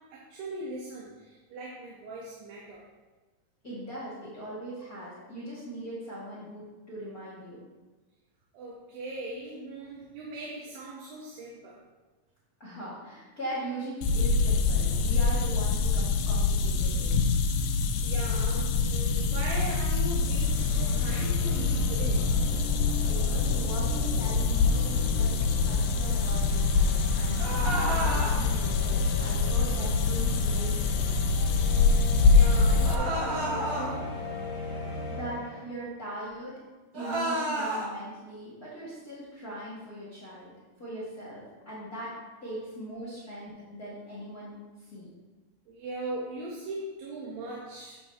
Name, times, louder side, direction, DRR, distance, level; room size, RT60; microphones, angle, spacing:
voice 1, 0.0-2.9 8.5-11.8 18.0-22.4 32.3-34.3 45.7-48.0, right 2 dB, 85° right, -3 dB, 2.8 m, -39 dB
voice 2, 3.6-7.6 12.6-17.1 23.1-25.4 25.6-31.1 34.6-36.5 36.9-40.5 40.8-42.1 42.4-45.1, right 1 dB, 35° left, -8 dB, 1.6 m, -40 dB
sound 1, 14.0-33.0, left 4 dB, 80° left, 2.1 m, -25 dB
sound 2, 18.6-35.8, left 1 dB, 25° right, 2.3 m, -38 dB
sound 3, 27.4-28.4 32.8-33.9 36.9-37.9, right 1 dB, 50° right, 3.5 m, -30 dB
8.6 x 7.3 x 2.8 m, 1.2 s
omnidirectional pair, 4.1 m